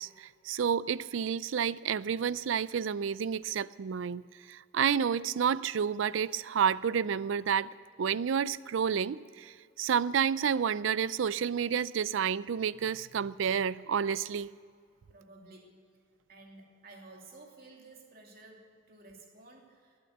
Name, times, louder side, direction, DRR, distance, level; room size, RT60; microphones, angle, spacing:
voice 1, 0.0-4.2 4.5-7.7 8.0-14.5, right 7 dB, 85° right, 19 dB, 0.4 m, -30 dB
voice 2, 15.1-15.8 16.3-20.0, right 2 dB, 50° right, 1 dB, 2.8 m, -53 dB
19.5 x 8.8 x 8.0 m, 2.2 s
head